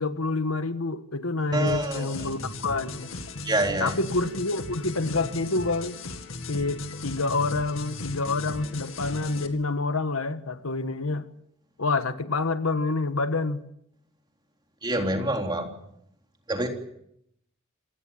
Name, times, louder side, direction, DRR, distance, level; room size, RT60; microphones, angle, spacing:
voice 1, 0.0-3.1 3.8-6.0 6.5-11.3 11.8-13.6, left 3 dB, 90° left, 11 dB, 1.5 m, -27 dB
voice 2, 1.5-2.1 3.4-3.9 14.8-15.7 16.5-16.7, right 1 dB, 20° right, 3 dB, 3.6 m, -26 dB
sound 1, 1.7-9.5, left 2 dB, 70° left, 2.3 m, -37 dB
27.0 x 18.5 x 7.4 m, 0.77 s
head